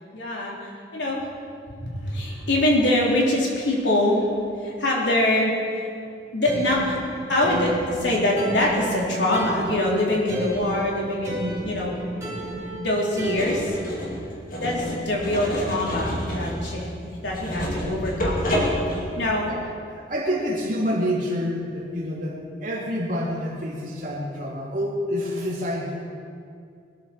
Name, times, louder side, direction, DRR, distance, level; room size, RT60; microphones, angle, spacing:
voice 1, 0.1-1.2 1.8-5.9 6.3-7.0 7.3-12.0 12.7-13.8 14.6-18.4 19.2-19.5, left 1 dB, 85° left, -3 dB, 3.4 m, -24 dB
sound 1, 6.4-14.1, equal, 15° right, 3.5 m, -33 dB
sound 2, 13.3-19.3, equal, 50° left, 2.5 m, -28 dB
voice 2, 19.9-26.0, equal, 45° right, -4 dB, 2.9 m, -28 dB
20.5 x 13.0 x 4.4 m, 2.3 s
head